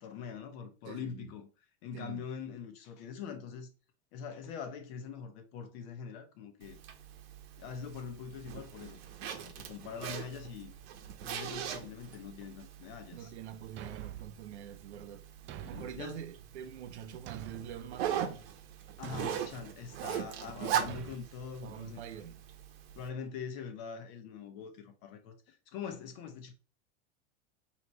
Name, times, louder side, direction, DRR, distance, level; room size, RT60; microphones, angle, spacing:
voice 1, 0.0-1.5 1.8-3.7 4.1-6.8 7.6-10.7 11.2-13.3 15.6-16.2 19.0-22.0 22.9-26.5, left 6 dB, 60° left, 1.2 m, -43 dB
voice 2, 0.8-1.3 1.9-2.2 13.1-15.2 15.7-18.4 19.1-19.5 21.6-22.4, right 9 dB, 85° right, 0.7 m, -45 dB
Zipper (clothing), 6.6-23.1, right 9 dB, 65° right, 0.9 m, -41 dB
Thump thud, 13.8-14.4 15.5-16.1 17.3-17.8 19.0-19.5 20.9-21.2, right 12 dB, 35° right, 0.4 m, -45 dB
4.1 x 2.9 x 3.1 m
hypercardioid pair, 115°, 33 cm